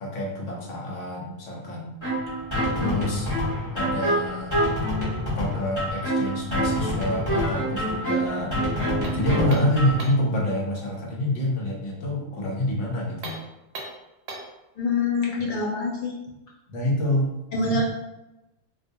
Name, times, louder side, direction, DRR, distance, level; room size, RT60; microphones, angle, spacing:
voice 1, 0.0-1.9 2.8-3.3 3.7-4.6 5.3-8.6 9.1-13.4 16.7-17.3 17.6-17.8, left 1 dB, 80° left, -2 dB, 1.1 m, -27 dB
sound 1, 2.0-10.0, equal, 25° left, 1.2 m, -26 dB
sound 2, 9.0-10.3 13.1-14.6, right 2 dB, 60° right, 0.7 m, -39 dB
voice 2, 14.8-16.1 17.5-17.8, left 3 dB, 60° left, -3 dB, 0.5 m, -25 dB
2.4 x 2.3 x 2.6 m, 0.96 s
omnidirectional pair, 1.3 m